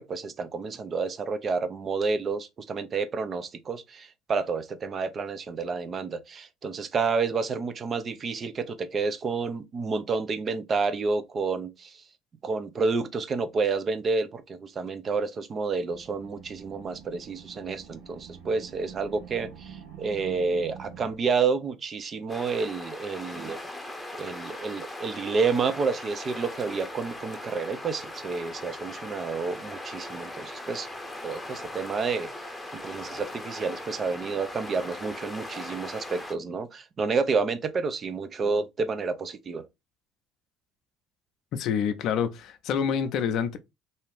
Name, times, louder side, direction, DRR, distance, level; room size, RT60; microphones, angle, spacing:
voice 1, 0.0-12.0 12.4-23.6 24.1-30.9 31.2-32.3 32.7-39.7, right 4 dB, 40° right, 0.5 m, -29 dB
sound 1, 15.9-21.2, right 7 dB, 75° right, 0.9 m, -46 dB
sound 2, 22.3-36.3, left 1 dB, 10° left, 0.7 m, -39 dB
voice 2, 41.5-43.6, left 7 dB, 60° left, 0.5 m, -27 dB
2.7 x 2.4 x 3.3 m
hypercardioid pair, 65°, 0 cm